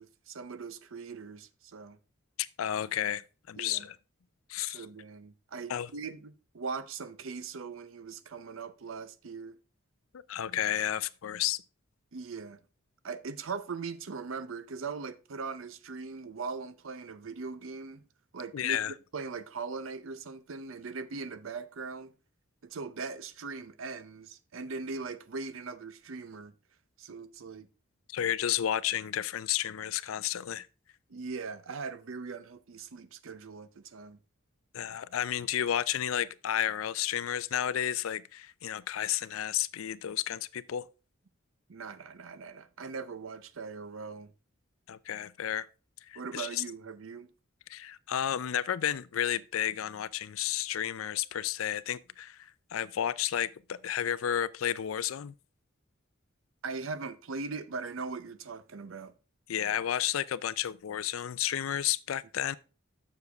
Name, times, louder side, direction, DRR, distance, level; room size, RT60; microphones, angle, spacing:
voice 1, 0.0-2.0 3.6-3.9 4.6-9.6 12.1-12.6 13.0-18.0 18.3-18.8 19.1-22.1 22.6-26.5 27.0-27.7 31.1-34.2 41.7-44.3 46.2-47.3 56.6-59.1, right 4 dB, 75° right, 0.6 m, -40 dB
voice 2, 2.4-4.0 4.5-4.9 5.7-5.9 10.3-11.6 18.5-18.9 28.1-30.7 34.7-40.8 44.9-45.7 46.1-46.6 47.7-55.3 59.5-62.6, left 10 dB, 80° left, 0.4 m, -32 dB
7.0 x 6.6 x 3.4 m
head